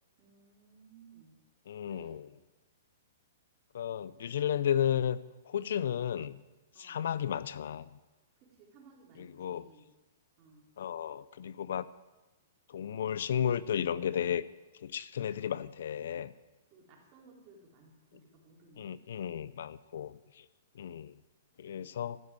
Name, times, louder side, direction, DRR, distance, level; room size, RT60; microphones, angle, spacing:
voice 1, 0.2-1.4 1.9-2.2 6.7-7.0 8.4-9.9 10.4-10.6 16.7-19.4, right 3 dB, 35° right, -1 dB, 4.1 m, -59 dB
voice 2, 1.7-2.3 3.7-5.2 5.5-6.4 6.8-7.9 9.2-9.6 10.8-11.9 12.7-14.4 14.8-16.3 18.8-20.4 20.8-21.1 21.6-22.2, left 9 dB, 70° left, 17 dB, 0.6 m, -33 dB
13.5 x 9.8 x 9.3 m, 1.1 s
hypercardioid pair, 150°, 0 cm